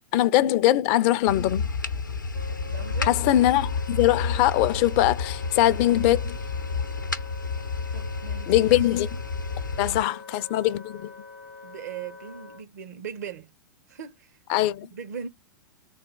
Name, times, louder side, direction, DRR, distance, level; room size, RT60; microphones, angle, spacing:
voice 1, 0.1-1.7 3.0-6.4 8.5-9.1 9.8-11.1 14.5-14.9, left 14 dB, 40° left, 0.4 m, -22 dB
sound 1, 1.3-10.0, left 4 dB, 85° left, 0.6 m, -30 dB
Wind instrument woodwind instrument, 2.3-12.6, left 4 dB, 90° right, 1.9 m, -44 dB
voice 2, 2.7-3.2 7.9-8.8 10.0-10.2 11.6-13.5 13.9-14.3 14.9-15.3, right 7 dB, 60° right, 0.7 m, -39 dB
3.5 x 2.2 x 3.7 m
figure-of-eight pair, 95°, 10 cm